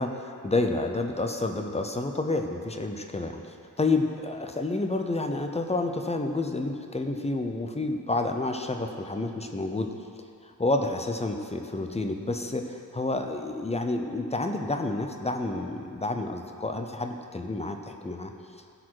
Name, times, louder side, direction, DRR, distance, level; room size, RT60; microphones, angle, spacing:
voice 1, 0.0-9.9 10.4-18.3, left 2 dB, 15° left, 5 dB, 0.7 m, -29 dB
16.0 x 6.5 x 4.7 m, 2.4 s
wide cardioid pair, 155°, 37 cm